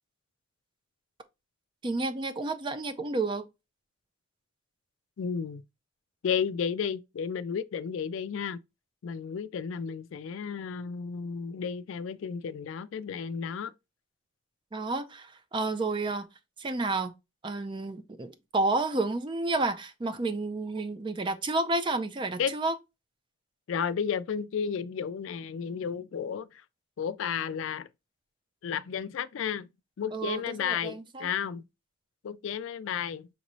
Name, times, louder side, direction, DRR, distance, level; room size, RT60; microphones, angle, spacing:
voice 1, 1.8-3.5 14.7-16.3 16.6-17.1 17.4-22.7 30.1-31.3, right 2 dB, 25° right, 0.4 m, -30 dB
voice 2, 5.2-5.6 6.2-8.6 9.0-13.7 22.4-22.5 23.7-26.6 27.0-27.9 28.6-29.7 30.0-31.6 32.2-33.3, left 7 dB, 70° left, 0.3 m, -32 dB
5.3 x 3.0 x 2.6 m
head